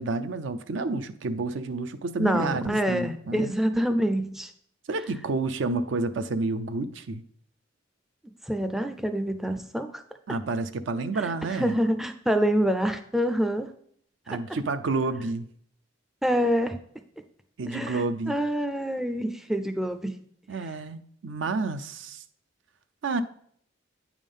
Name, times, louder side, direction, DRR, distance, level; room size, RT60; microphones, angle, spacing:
voice 1, 0.0-3.5 4.9-7.2 10.3-11.8 14.3-15.5 17.6-18.4 20.5-22.2 23.0-23.2, right 3 dB, 75° right, 0.5 m, -30 dB
voice 2, 2.2-4.5 8.5-10.0 11.2-13.7 16.2-16.8 17.7-20.2, equal, ahead, 0.3 m, -26 dB
9.0 x 3.6 x 5.3 m
head